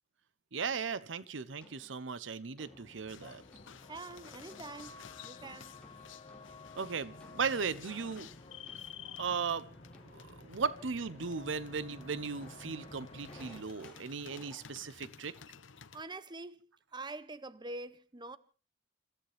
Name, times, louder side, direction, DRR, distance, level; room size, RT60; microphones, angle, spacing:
voice 1, 0.5-3.4 6.7-8.3 9.2-9.7 10.1-15.4, right 5 dB, 75° right, 0.8 m, -37 dB
sound 1, 0.6-1.0 1.6-2.0 2.6-2.9 3.5-4.1 4.5-4.9 5.4-10.3 12.4-15.1 15.3-15.7, left 1 dB, 5° left, 4.9 m, -59 dB
sound 2, 2.6-13.6, left 2 dB, 30° left, 1.5 m, -53 dB
sound 3, 3.1-16.0, left 7 dB, 85° left, 0.8 m, -53 dB
voice 2, 3.9-5.7 15.9-18.4, right 2 dB, 25° right, 0.7 m, -45 dB
29.0 x 14.5 x 3.4 m
head